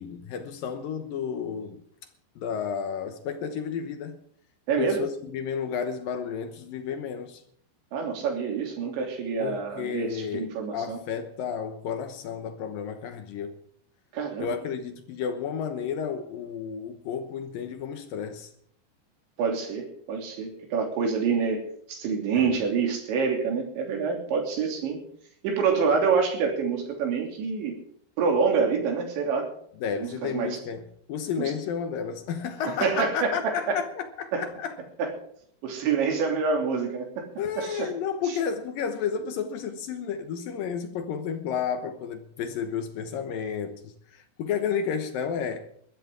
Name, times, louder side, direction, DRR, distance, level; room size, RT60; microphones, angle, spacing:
voice 1, 0.0-1.8 2.4-4.2 4.8-7.4 9.4-13.5 14.4-18.5 22.3-22.5 29.8-30.8 31.1-34.8 37.4-45.7, left 7 dB, 75° left, 2.1 m, -32 dB
voice 2, 4.7-5.0 7.9-11.0 14.1-14.5 19.4-21.6 21.9-25.0 25.4-27.8 28.2-29.5 29.9-30.6 31.4-31.5 32.8-33.3 33.7-33.8 34.3-34.4 35.0-35.1 35.6-37.3 37.6-37.9 38.3-38.4, right 5 dB, 70° right, 5.4 m, -27 dB
21.5 x 13.0 x 3.8 m
omnidirectional pair, 5.5 m